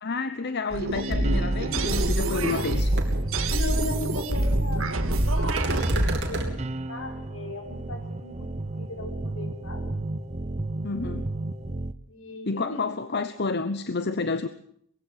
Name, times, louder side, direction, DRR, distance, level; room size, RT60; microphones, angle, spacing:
voice 1, 0.0-2.9 10.8-11.3 12.4-14.5, left 3 dB, 55° left, 11 dB, 1.0 m, -30 dB
sound 1, 0.7-6.1, right 1 dB, 75° right, 2.1 m, -26 dB
sound 2, 1.2-11.9, right 2 dB, 30° right, 0.9 m, -33 dB
sound 3, 2.0-2.1 2.4-2.7 3.0-3.1 5.4-6.5, right 1 dB, 55° right, 3.9 m, -29 dB
voice 2, 3.5-6.6 6.9-8.4 8.7-9.9 12.1-12.8, left 2 dB, 75° left, 3 dB, 5.2 m, -37 dB
22.0 x 16.0 x 7.8 m, 0.66 s
head